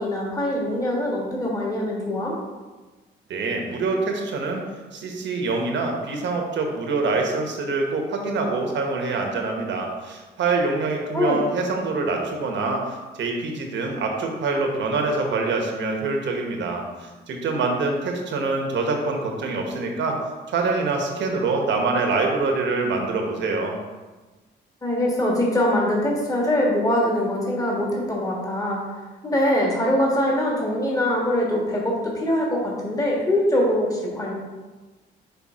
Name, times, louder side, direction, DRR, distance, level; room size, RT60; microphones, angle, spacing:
voice 1, 0.0-2.3 11.1-11.4 24.8-28.8 29.2-34.3, left 1 dB, 15° left, -3 dB, 1.5 m, -23 dB
voice 2, 3.3-4.6 4.9-20.2 20.5-23.8, right 3 dB, 65° right, 2 dB, 1.2 m, -25 dB
5.8 x 3.4 x 4.9 m, 1.2 s
cardioid pair, 90°, 20 cm